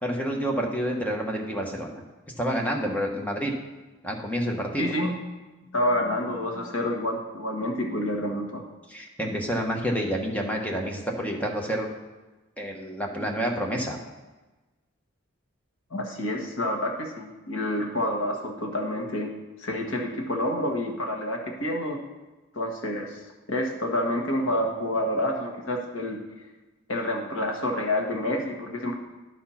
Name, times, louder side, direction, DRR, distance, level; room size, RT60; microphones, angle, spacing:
voice 1, 0.0-2.0 2.4-3.5 4.0-4.9 8.9-11.9 12.6-14.0, equal, 5° left, 0 dB, 1.0 m, -28 dB
voice 2, 4.8-5.2 5.6-8.6 15.9-19.3 19.6-22.0 22.5-23.2 23.5-26.2 26.9-28.9, left 1 dB, 65° left, 1 dB, 1.5 m, -28 dB
11.0 x 4.4 x 5.6 m, 1.2 s
head